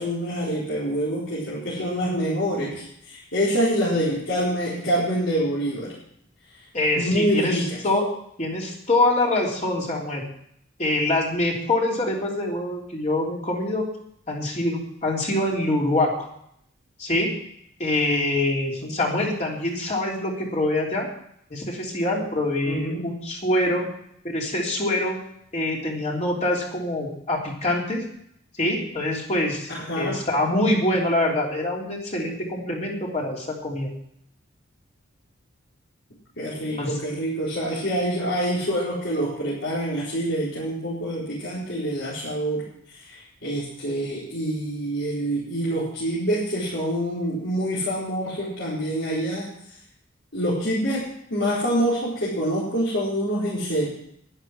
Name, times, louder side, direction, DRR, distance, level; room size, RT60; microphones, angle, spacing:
voice 1, 0.0-5.9 7.0-7.8 18.8-19.2 22.7-23.1 29.7-30.2 36.4-49.5 50.3-53.9, equal, 65° left, -9 dB, 4.3 m, -26 dB
voice 2, 6.7-8.1 8.4-10.2 10.8-13.9 14.3-16.3 17.0-17.3 17.8-21.1 21.5-23.8 24.2-25.2 25.5-28.0 28.6-29.7 30.0-33.9 36.8-37.0, left 1 dB, 35° left, -2 dB, 3.3 m, -25 dB
11.0 x 11.0 x 6.2 m, 0.71 s
head